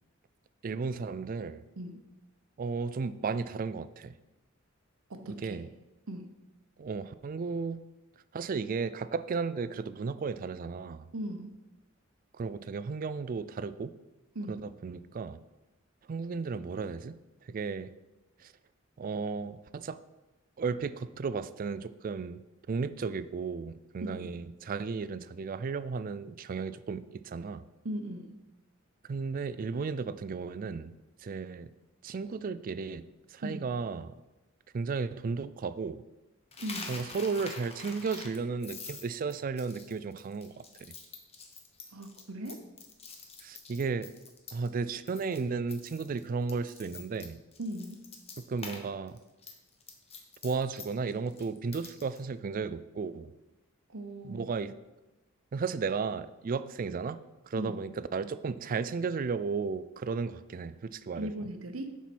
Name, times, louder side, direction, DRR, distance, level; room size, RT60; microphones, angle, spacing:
voice 1, 0.6-1.6 2.6-4.1 5.2-5.7 6.8-7.8 8.3-11.1 12.3-13.9 14.5-15.4 16.1-17.2 17.4-17.9 18.4-18.5 19.0-20.0 20.6-22.4 22.7-27.7 29.1-31.0 31.2-31.7 32.0-33.0 33.3-34.1 34.7-36.0 36.9-40.9 43.4-44.1 44.5-47.4 48.4-49.2 50.4-53.3 54.2-54.7 55.5-57.2 57.4-61.3, right 4 dB, 40° right, 14 dB, 0.3 m, -34 dB
voice 2, 5.1-5.6 6.1-6.3 11.1-11.5 14.3-14.7 24.0-24.3 27.8-28.4 33.4-33.6 36.6-37.0 41.9-42.7 47.6-48.0 53.9-54.5 57.5-57.8 61.2-62.0, right 1 dB, 80° right, 7 dB, 0.9 m, -38 dB
Coin (dropping), 36.5-44.8 45.1-45.4 45.7-48.8 49.1-52.2, left 4 dB, 30° left, 1.1 m, -46 dB
7.2 x 5.8 x 6.0 m, 1.1 s
head